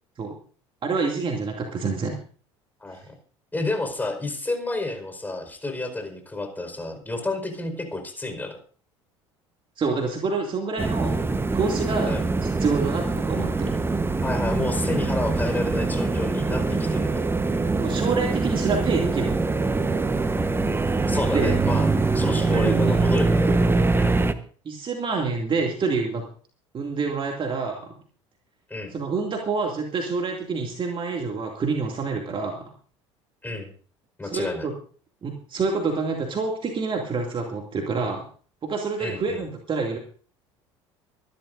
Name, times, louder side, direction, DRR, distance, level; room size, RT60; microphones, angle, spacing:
voice 1, 0.8-2.2 9.8-11.2 11.5-12.1 12.4-13.7 17.8-19.3 21.3-21.5 22.5-22.9 23.5-23.6 24.6-26.2 26.7-27.9 28.9-32.7 34.2-34.7 35.2-38.2 38.6-40.0, right 4 dB, 35° right, 2 dB, 2.5 m, -27 dB
voice 2, 2.8-3.1 3.5-8.6 12.1-12.3 14.2-17.3 21.1-23.5 23.9-24.2 28.7-28.9 33.4-33.7 34.2-34.7 39.0-39.4, left 2 dB, 10° left, 5 dB, 4.8 m, -30 dB
sound 1, 10.8-24.3, right 3 dB, 15° right, 1.1 m, -23 dB
25.0 x 12.0 x 2.6 m, 0.42 s
figure-of-eight pair, 65°, 15 cm